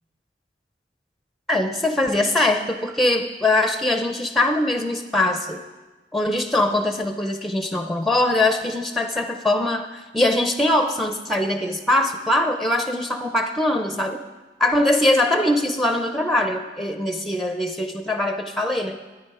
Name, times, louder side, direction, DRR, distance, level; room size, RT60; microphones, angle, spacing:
voice 1, 1.5-5.6 6.1-14.2 14.6-19.0, left 1 dB, ahead, 6 dB, 0.6 m, -22 dB
13.0 x 9.7 x 4.8 m, 1.2 s
head